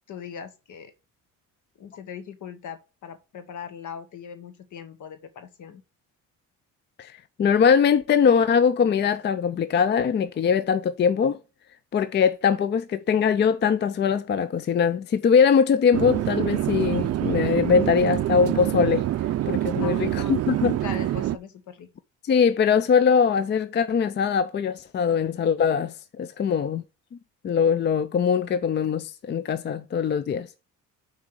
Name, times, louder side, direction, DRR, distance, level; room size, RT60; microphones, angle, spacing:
voice 1, 0.1-0.9 1.8-5.8 19.8-20.4 20.8-21.9, left 8 dB, 60° left, 1.3 m, -40 dB
voice 2, 7.0-11.4 11.9-19.1 19.5-20.8 22.2-26.8 27.4-30.5, left 6 dB, 35° left, 0.4 m, -22 dB
Chatter / Fixed-wing aircraft airplane, 15.9-21.4, right 13 dB, 50° right, 0.5 m, -26 dB
5.9 x 4.2 x 6.3 m
cardioid pair, 115°, 33 cm